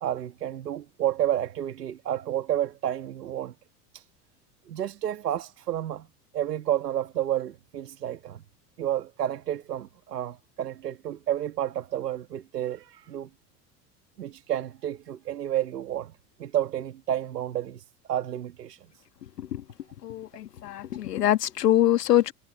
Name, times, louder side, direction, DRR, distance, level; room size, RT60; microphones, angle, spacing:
voice 1, 0.0-3.5 3.9-4.0 4.7-6.1 6.3-8.4 8.8-13.3 14.2-16.1 16.4-18.9, right 11 dB, 80° right, 1.9 m, -30 dB
voice 2, 20.0-22.3, left 12 dB, 80° left, 1.7 m, -24 dB
hypercardioid pair, 85°, 47 cm